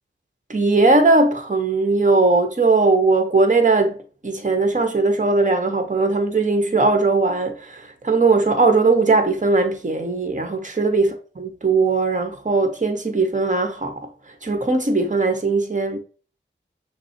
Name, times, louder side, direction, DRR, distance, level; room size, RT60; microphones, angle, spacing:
voice 1, 0.5-4.0 4.2-14.1 14.4-16.0, right 3 dB, 40° right, 1.0 m, -19 dB
6.0 x 2.0 x 4.4 m
cardioid pair, 45°, 20 cm